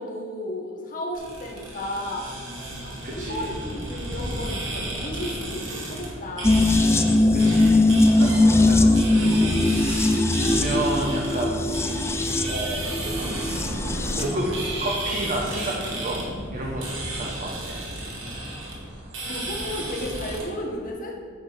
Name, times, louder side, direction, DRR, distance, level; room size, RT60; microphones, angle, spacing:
voice 1, 0.0-6.6 19.2-21.1, left 1 dB, 45° left, -1 dB, 1.4 m, -34 dB
sound 1, 1.1-20.4, right 1 dB, 80° right, 2.2 m, -33 dB
voice 2, 3.0-3.5 7.3-11.6 12.4-13.5 14.1-14.5 14.8-16.2 16.5-17.8, right 1 dB, 40° right, -2 dB, 1.0 m, -31 dB
sound 2, 6.4-14.3 14.6-14.7, left 2 dB, 15° left, 0.4 m, -20 dB
9.2 x 5.0 x 5.8 m, 2.1 s
head